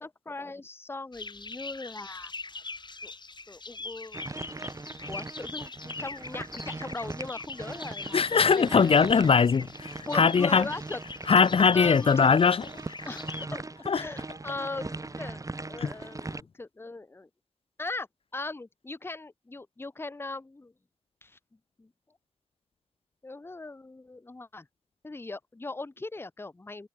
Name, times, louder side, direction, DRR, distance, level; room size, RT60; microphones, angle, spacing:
voice 1, 0.0-2.3 3.0-3.1 3.5-4.5 5.1-9.2 10.1-11.0 11.7-12.3 13.1-13.6 13.9-15.4 15.7-17.3 17.8-18.1 18.3-20.7 21.2-21.4 21.8-21.9 23.2-24.7 25.0-26.9, left 3 dB, 20° left, 0.7 m, -39 dB
sound 1, 1.1-13.5, left 3 dB, 45° left, 2.8 m, -42 dB
sound 2, 4.1-16.4, right 2 dB, 30° right, 1.6 m, -40 dB
voice 2, 8.1-10.7 11.3-12.7 13.9-14.0 15.8-15.9, left 5 dB, 60° left, 0.6 m, -21 dB
sound 3, 11.2-15.4, right 4 dB, 60° right, 8.0 m, -59 dB
wide cardioid pair, 75°, 11 cm